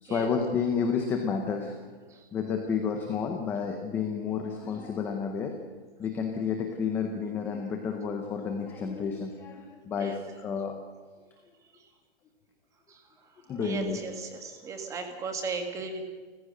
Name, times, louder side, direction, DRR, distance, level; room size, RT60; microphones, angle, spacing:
voice 1, 0.0-1.8 2.3-5.5 6.0-10.8 13.5-14.0, left 6 dB, 5° left, 4 dB, 0.7 m, -30 dB
voice 2, 13.6-16.1, right 4 dB, 10° right, 5 dB, 1.8 m, -36 dB
29.5 x 15.0 x 6.5 m, 1.5 s
hypercardioid pair, 170°, 31 cm